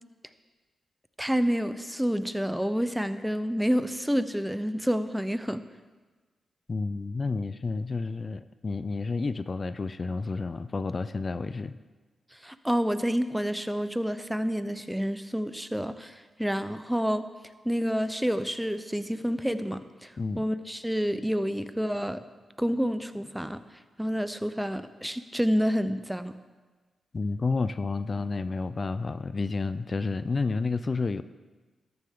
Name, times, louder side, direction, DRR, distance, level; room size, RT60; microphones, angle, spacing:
voice 1, 1.2-5.6 12.3-17.3 17.6-22.2 22.6-23.6 24.0-26.4, equal, 5° right, 11 dB, 0.8 m, -29 dB
voice 2, 6.7-11.8 20.2-20.4 27.1-31.2, left 4 dB, 45° left, 14 dB, 0.5 m, -30 dB
13.0 x 9.6 x 3.7 m, 1.3 s
supercardioid pair, 45°, 0 cm